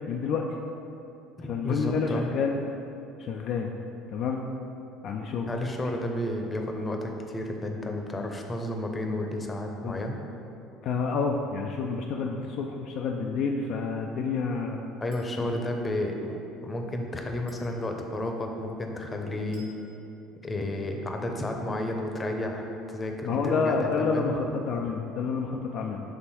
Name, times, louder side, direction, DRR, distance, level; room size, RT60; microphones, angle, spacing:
voice 1, 0.1-0.5 1.5-2.6 3.2-3.7 4.1-4.4 5.0-5.5 9.8-10.0 10.8-14.8 15.4-15.6 23.2-26.0, left 5 dB, 55° left, 1 dB, 0.4 m, -29 dB
voice 2, 1.4-2.3 5.5-10.2 15.0-19.7 20.4-24.3, left 1 dB, 25° left, 3 dB, 0.7 m, -32 dB
Chink clink, 15.1-15.5 17.5-17.8 19.5-19.8, right 2 dB, 70° right, 1.2 m, -54 dB
7.0 x 3.3 x 4.4 m, 2.8 s
figure-of-eight pair, 60°, 0 cm